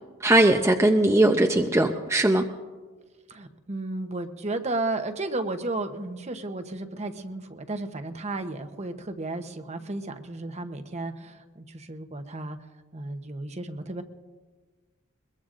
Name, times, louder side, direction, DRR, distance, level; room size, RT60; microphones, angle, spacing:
voice 1, 0.2-2.4, right 1 dB, 15° right, 2 dB, 0.7 m, -20 dB
voice 2, 3.3-12.6 12.9-14.0, right 2 dB, 30° right, 7 dB, 0.9 m, -33 dB
22.0 x 21.5 x 2.6 m, 1.4 s
head